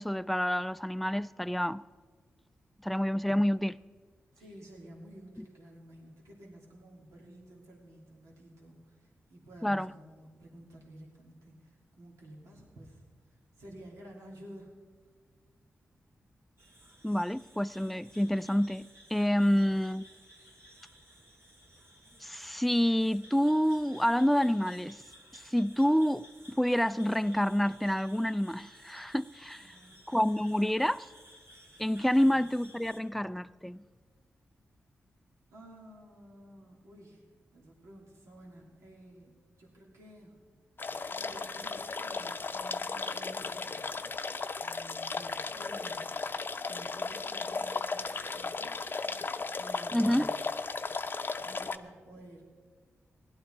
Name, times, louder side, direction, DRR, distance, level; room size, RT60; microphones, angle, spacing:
voice 1, 0.0-1.8 2.8-3.8 9.6-9.9 17.0-20.0 22.2-25.0 25.3-26.3 26.6-29.6 30.1-31.1 31.8-33.8 49.9-50.3, equal, ahead, 0.4 m, -28 dB
voice 2, 4.3-13.0 13.3-14.7 29.6-30.0 32.2-32.4 35.5-37.2 37.5-40.3 41.1-44.3 44.6-46.1 46.6-50.4 51.4-52.5, right 1 dB, 90° right, 2.8 m, -52 dB
sound 1, 16.6-33.0, equal, 60° right, 2.4 m, -56 dB
sound 2, 40.8-51.8, left 4 dB, 45° left, 0.6 m, -36 dB
16.5 x 11.5 x 4.5 m
cardioid pair, 65°, 5 cm